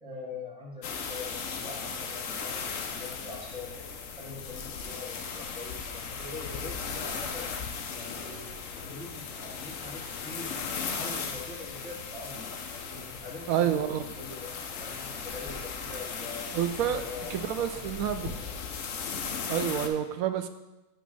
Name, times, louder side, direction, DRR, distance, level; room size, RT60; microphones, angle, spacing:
voice 1, 0.0-3.7 4.2-7.5 7.9-12.4 12.9-16.5 16.8-18.7, left 3 dB, 25° right, -5 dB, 1.5 m, -43 dB
sound 1, 0.8-19.9, left 6 dB, 65° left, 1.0 m, -37 dB
voice 2, 13.5-14.0 16.5-17.0 17.3-18.3 19.5-20.5, right 9 dB, 80° right, 9 dB, 1.0 m, -28 dB
8.2 x 3.0 x 6.0 m, 1.1 s
omnidirectional pair, 1.5 m